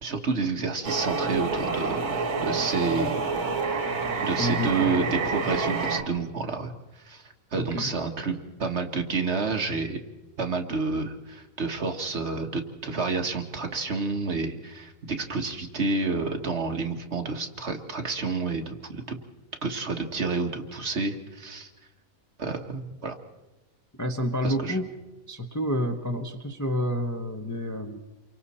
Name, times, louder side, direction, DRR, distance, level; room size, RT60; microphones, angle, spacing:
voice 1, 0.0-3.2 4.2-6.7 7.0-8.3 8.6-10.0 10.4-19.2 19.6-21.7 22.4-23.2 24.4-24.8, right 4 dB, 50° right, 4 dB, 1.6 m, -29 dB
sound 1, 0.8-6.0, right 4 dB, 75° right, 2.0 m, -28 dB
voice 2, 4.4-4.9 7.6-7.9 24.0-24.9 25.3-28.0, equal, 15° left, 3 dB, 0.9 m, -29 dB
28.5 x 24.0 x 4.3 m, 1.1 s
omnidirectional pair, 1.6 m